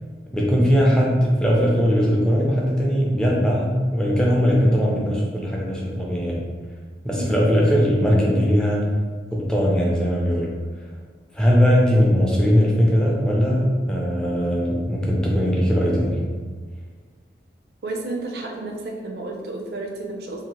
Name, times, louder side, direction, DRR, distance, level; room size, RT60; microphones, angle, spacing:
voice 1, 0.3-6.4 7.0-8.9 9.3-10.5 11.3-16.2, equal, 5° left, -4 dB, 0.4 m, -19 dB
voice 2, 17.8-20.5, right 2 dB, 60° right, 1 dB, 0.5 m, -31 dB
2.8 x 2.5 x 2.9 m, 1.5 s
head